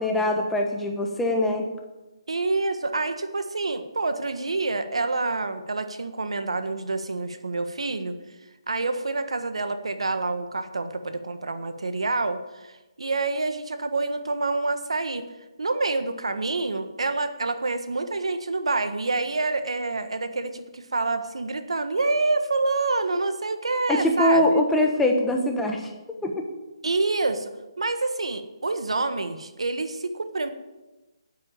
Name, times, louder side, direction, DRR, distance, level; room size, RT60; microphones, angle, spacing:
voice 1, 0.0-1.7 23.9-25.8 26.2-26.3, left 1 dB, 5° left, 2 dB, 1.2 m, -22 dB
voice 2, 2.3-8.1 8.7-15.3 15.6-24.6 26.8-27.5 27.8-30.5, right 3 dB, 90° right, 9 dB, 1.4 m, -27 dB
9.2 x 8.6 x 8.6 m, 1.1 s
hypercardioid pair, 160°, 3 cm